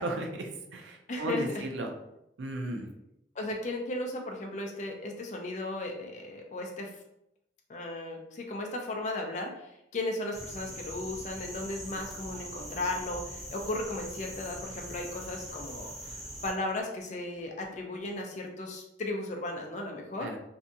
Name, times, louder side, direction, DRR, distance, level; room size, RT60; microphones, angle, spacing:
voice 1, 0.0-1.9 2.4-2.9 20.2-20.4, right 2 dB, 85° right, 3 dB, 0.4 m, -35 dB
voice 2, 1.1-1.6 3.4-6.9 7.7-20.3, left 2 dB, 40° left, 2 dB, 0.4 m, -36 dB
sound 1, 10.3-16.5, equal, ahead, 0.6 m, -42 dB
2.6 x 2.2 x 2.6 m, 0.81 s
head